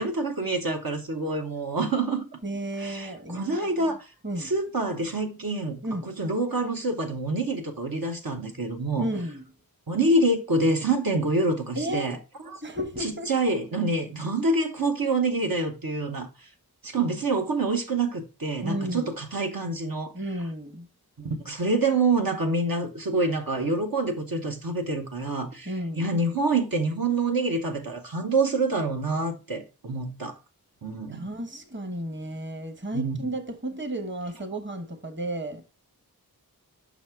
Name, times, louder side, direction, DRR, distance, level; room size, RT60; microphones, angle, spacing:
voice 1, 0.0-2.2 2.8-4.1 4.4-9.1 9.9-12.2 12.5-12.6 13.0-16.5 16.8-20.1 21.2-25.7 26.0-30.3 30.8-31.2 32.9-33.2, right 2 dB, 70° right, 1.1 m, -26 dB
voice 2, 2.4-4.0 4.2-4.5 5.8-6.1 9.0-9.4 11.7-12.2 12.6-13.3 18.6-19.1 20.1-20.9 25.7-26.1 31.1-35.6, right 1 dB, 30° right, 1.1 m, -33 dB
5.9 x 4.1 x 4.5 m
wide cardioid pair, 50°, 37 cm